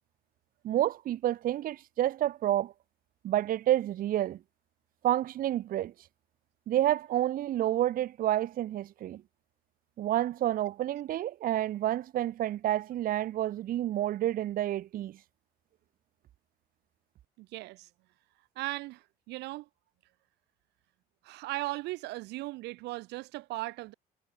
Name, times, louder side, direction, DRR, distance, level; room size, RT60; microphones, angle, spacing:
voice 1, 0.6-2.7 3.2-4.4 5.0-5.9 6.7-9.2 10.0-15.2, right 13 dB, 55° right, 0.8 m, -29 dB
voice 2, 17.4-17.9 18.6-19.7 21.2-23.9, right 20 dB, 85° right, 1.0 m, -37 dB
cardioid pair, 110°, 17 cm